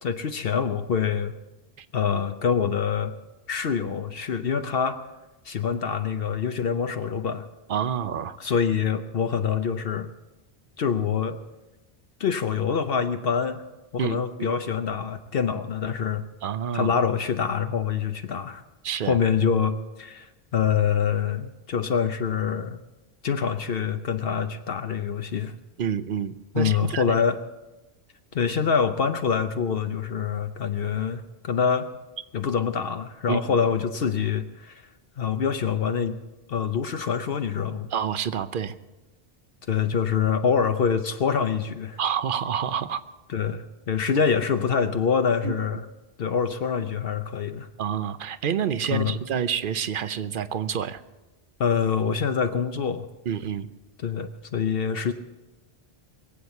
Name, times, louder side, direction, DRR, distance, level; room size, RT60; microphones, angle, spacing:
voice 1, 0.0-1.3 1.9-3.1 3.5-5.0 5.4-7.4 8.4-10.1 10.8-11.4 12.2-13.6 13.9-16.2 16.7-18.6 19.0-22.8 23.2-25.5 26.5-27.4 28.3-31.9 32.3-34.8 35.2-36.2 36.5-37.9 39.7-42.0 43.3-45.8 46.2-47.7 48.9-49.2 51.6-53.1 54.0-55.1, left 6 dB, 65° left, 8 dB, 0.9 m, -25 dB
voice 2, 7.7-8.4 14.0-14.6 16.4-16.9 18.8-19.2 25.8-27.1 33.3-33.4 37.9-38.7 42.0-43.0 45.4-45.5 47.8-51.0 53.3-53.7, right 8 dB, 55° right, 13 dB, 0.8 m, -28 dB
22.0 x 8.2 x 7.0 m, 1.1 s
omnidirectional pair, 1.1 m